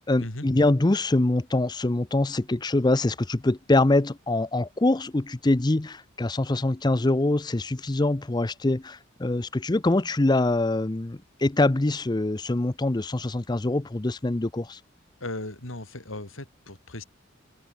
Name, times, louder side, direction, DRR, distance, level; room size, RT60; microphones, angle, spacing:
voice 1, 0.1-14.8, left 2 dB, 20° left, 0.6 m, -24 dB
voice 2, 15.2-17.0, left 1 dB, 80° left, 3.9 m, -37 dB
head